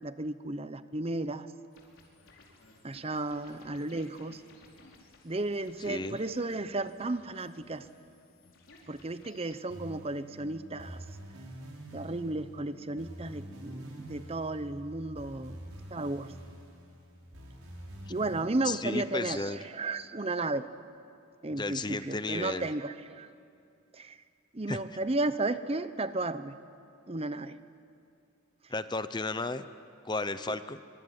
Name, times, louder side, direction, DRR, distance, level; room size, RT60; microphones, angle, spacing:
voice 1, 0.0-1.5 2.8-4.4 5.2-7.9 8.9-11.0 11.9-15.6 15.9-16.3 18.1-20.7 21.4-23.3 23.9-24.2 24.5-26.6 27.1-27.6, right 2 dB, 25° right, 12 dB, 0.8 m, -34 dB
sound 1, 1.7-9.7, left 2 dB, 65° left, 4.8 m, -58 dB
voice 2, 5.9-6.2 18.6-19.6 21.6-22.7 24.7-24.8 28.7-29.7 30.0-30.8, left 3 dB, 20° left, 12 dB, 0.7 m, -33 dB
sound 2, 9.7-18.4, equal, 70° right, 6.5 m, -46 dB
25.0 x 24.0 x 9.7 m, 2.5 s
head